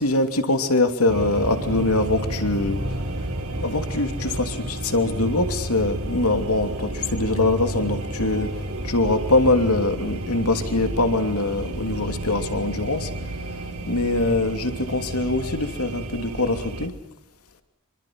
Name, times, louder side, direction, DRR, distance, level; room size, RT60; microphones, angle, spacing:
voice 1, 0.0-2.8 3.6-8.5 8.8-13.1 13.9-16.9, left 2 dB, 75° left, 7 dB, 2.9 m, -23 dB
sound 1, 1.1-16.9, right 1 dB, 70° right, 3.9 m, -31 dB
26.0 x 25.0 x 6.3 m, 0.80 s
head